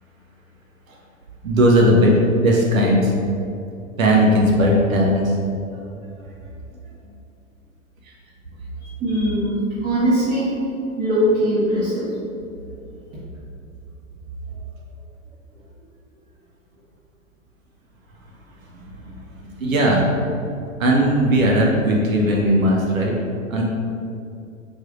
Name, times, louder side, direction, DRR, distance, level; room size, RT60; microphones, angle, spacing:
voice 1, 1.4-3.1 4.0-5.4 6.4-6.5 8.0-8.1 19.1-20.1 20.8-23.1 23.5-23.6, equal, 80° right, -2 dB, 0.8 m, -17 dB
voice 2, 9.0-10.6 11.0-12.1, equal, 35° right, -12 dB, 1.4 m, -20 dB
5.5 x 3.4 x 2.5 m, 2.6 s
figure-of-eight pair, 105°, 40 cm